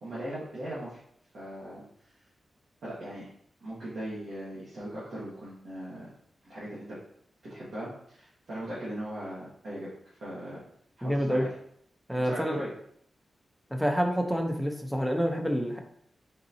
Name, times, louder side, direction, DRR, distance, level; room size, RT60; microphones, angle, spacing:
voice 1, 0.0-1.0 1.3-1.8 2.8-3.2 3.6-6.1 6.4-7.0 7.5-10.6 11.0-11.5 12.2-12.7, right 1 dB, 90° right, -9 dB, 1.3 m, -39 dB
voice 2, 11.0-11.5 12.1-12.6 13.7-15.8, equal, ahead, 3 dB, 0.5 m, -28 dB
3.9 x 3.9 x 2.6 m, 0.68 s
wide cardioid pair, 125°, 0 cm